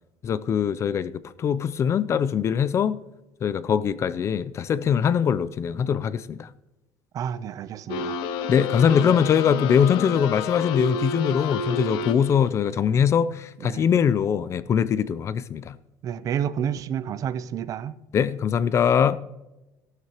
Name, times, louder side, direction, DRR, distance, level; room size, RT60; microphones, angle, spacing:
voice 1, 0.2-3.0 3.4-6.5 8.5-15.7 18.1-19.2, left 7 dB, 35° left, 0.5 m, -22 dB
voice 2, 7.1-8.2 13.6-13.9 16.0-18.0, right 9 dB, 45° right, 0.6 m, -30 dB
sound 1, 7.9-12.5, left 4 dB, 80° left, 0.7 m, -30 dB
15.0 x 12.5 x 3.0 m
cardioid pair, 125°, 8 cm